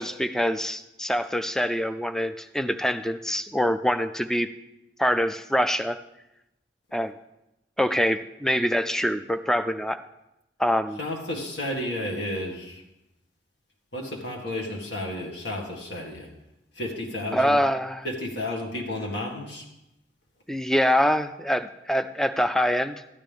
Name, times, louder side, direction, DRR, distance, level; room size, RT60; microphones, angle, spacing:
voice 1, 0.0-4.5 5.0-6.0 6.9-7.1 7.8-10.0 10.6-11.0 17.3-18.1 20.5-23.0, equal, 5° left, 9 dB, 0.3 m, -25 dB
voice 2, 11.0-12.8 13.9-16.3 16.8-17.6 18.0-19.7, left 1 dB, 75° left, 0 dB, 1.9 m, -32 dB
13.0 x 9.2 x 3.5 m, 0.90 s
head